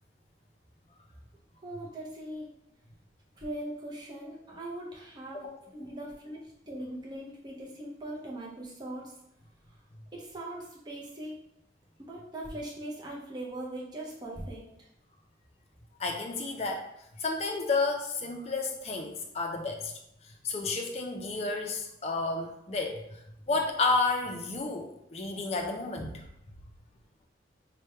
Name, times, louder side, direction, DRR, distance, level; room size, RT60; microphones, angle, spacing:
voice 1, 1.6-2.5 3.4-6.4 6.7-9.1 10.1-11.3 12.0-14.6, right 1 dB, 25° right, -4 dB, 0.5 m, -40 dB
voice 2, 16.0-16.8 17.2-19.9 20.4-23.0 23.5-26.3, left 3 dB, 35° left, 3 dB, 0.4 m, -31 dB
3.2 x 2.2 x 4.3 m, 0.80 s
head